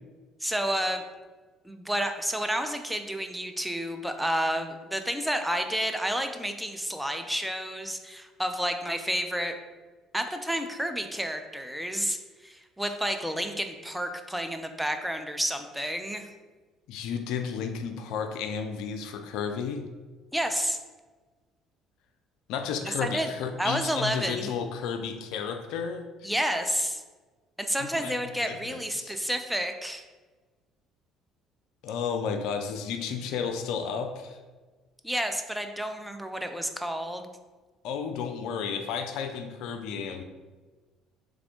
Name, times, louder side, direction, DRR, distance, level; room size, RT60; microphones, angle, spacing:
voice 1, 0.4-1.0 1.6-9.6 10.1-12.2 12.4-16.3 20.3-20.8 22.8-23.3 23.6-24.5 26.2-27.0 27.6-30.0 35.0-37.3, equal, 5° right, 6 dB, 0.5 m, -30 dB
voice 2, 16.9-19.9 22.5-26.1 27.8-29.1 31.8-34.4 37.8-40.2, left 6 dB, 65° left, 6 dB, 0.4 m, -32 dB
3.5 x 3.4 x 3.7 m, 1.3 s
hypercardioid pair, 55°, 0 cm